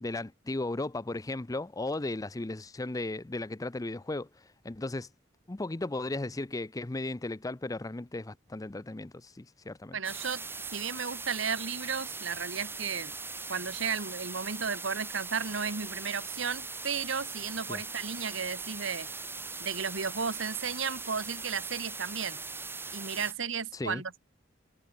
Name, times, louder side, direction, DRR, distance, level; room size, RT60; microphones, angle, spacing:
voice 1, 0.0-4.3 4.6-5.1 5.5-10.0 17.7-17.8 23.7-24.0, left 2 dB, 20° left, 0.6 m, -35 dB
voice 2, 9.9-10.4 10.7-13.1 13.5-19.1 19.6-22.4 22.9-24.2, right 6 dB, 70° right, 1.4 m, -34 dB
sound 1, 10.0-23.3, right 4 dB, 10° right, 1.3 m, -40 dB
head